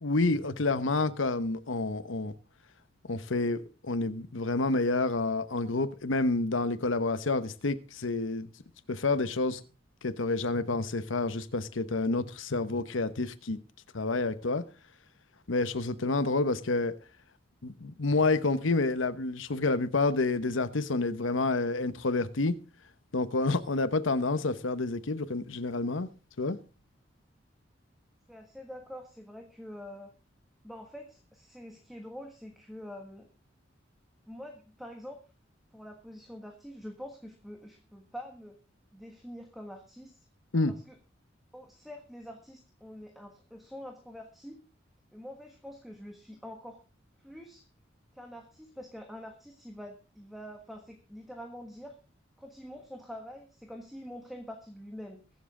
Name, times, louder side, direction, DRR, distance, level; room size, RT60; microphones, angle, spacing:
voice 1, 0.0-2.3 3.1-8.5 8.9-9.6 10.0-13.6 13.9-14.6 15.5-16.9 17.6-22.6 23.1-26.1 26.4-26.6 40.5-40.7, left 3 dB, 85° left, 1.0 m, -29 dB
voice 2, 28.3-30.1 30.6-33.3 34.3-35.2 35.7-38.6 38.9-40.2 40.7-41.0 41.5-44.6 45.1-46.8 47.2-47.6 48.1-51.9 52.4-55.2, equal, ahead, 1.4 m, -45 dB
22.0 x 7.4 x 3.7 m
head